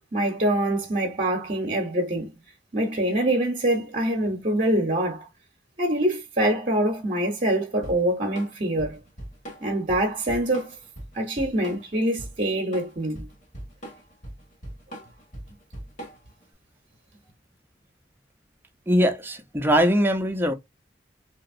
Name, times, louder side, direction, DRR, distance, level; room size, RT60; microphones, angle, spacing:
voice 1, 0.1-2.3 2.7-5.3 5.8-9.0 9.6-10.8 11.1-13.3, right 1 dB, 45° right, 0.8 m, -25 dB
Drum kit / Drum, 7.8-16.4, right 1 dB, 45° left, 1.6 m, -40 dB
voice 2, 18.9-20.5, equal, 10° right, 0.6 m, -21 dB
2.9 x 2.8 x 2.6 m
head